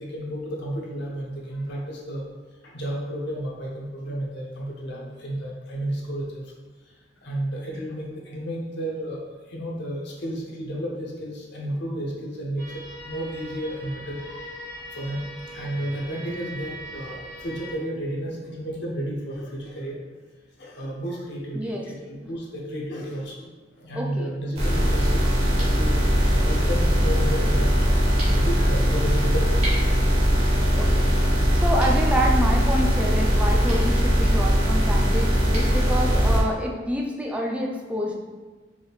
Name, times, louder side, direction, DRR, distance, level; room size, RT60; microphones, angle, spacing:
voice 1, 0.0-2.2 2.6-6.5 7.2-9.2 9.5-12.6 13.0-14.2 14.9-15.2 15.5-20.0 20.6-23.5 23.8-25.2 25.5-27.7 28.3-29.6, right 1 dB, 65° left, -3 dB, 0.9 m, -32 dB
sound 1, 12.6-17.7, right 1 dB, 15° left, 1.3 m, -40 dB
voice 2, 24.0-24.3 30.7-38.2, equal, 5° right, -1 dB, 0.5 m, -28 dB
sound 2, 24.6-36.4, equal, 35° right, 1.3 m, -20 dB
4.9 x 3.4 x 2.4 m, 1.3 s
head